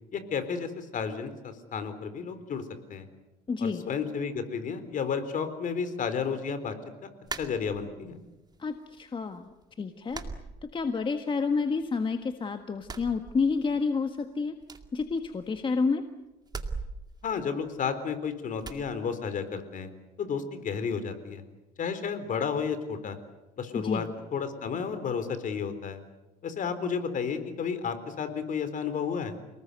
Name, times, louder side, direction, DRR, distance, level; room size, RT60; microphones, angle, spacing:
voice 1, 0.1-2.6 2.9-3.1 3.6-6.8 7.0-7.1 7.4-8.2 17.2-19.9 20.2-21.4 21.8-23.2 23.6-26.0 26.4-29.4, left 6 dB, 50° left, 11 dB, 3.8 m, -32 dB
voice 2, 3.5-3.9 8.6-9.4 9.8-10.2 10.7-14.5 14.9-16.0 23.7-24.1, left 4 dB, 30° left, 7 dB, 1.6 m, -29 dB
sound 1, 7.3-8.2 8.5-9.2 9.5-9.6 10.1-11.2 11.5-12.3 12.7-13.9 14.2-14.3 14.6-15.8 16.4-18.1 18.6-18.9, right 4 dB, 25° right, 2.3 m, -41 dB
29.5 x 19.5 x 8.2 m, 1.0 s
cardioid pair, 110°, 17 cm